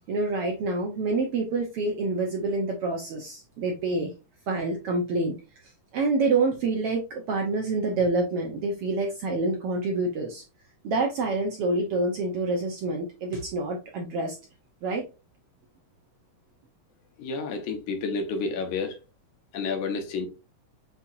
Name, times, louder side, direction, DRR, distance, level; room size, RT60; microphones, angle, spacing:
voice 1, 0.1-4.1 4.5-5.3 5.9-10.4 10.8-14.4 14.8-15.0, right 3 dB, 75° right, 1.4 m, -27 dB
voice 2, 17.2-19.0 19.5-20.3, left 4 dB, 85° left, 2.4 m, -30 dB
6.8 x 2.8 x 2.5 m
omnidirectional pair, 3.4 m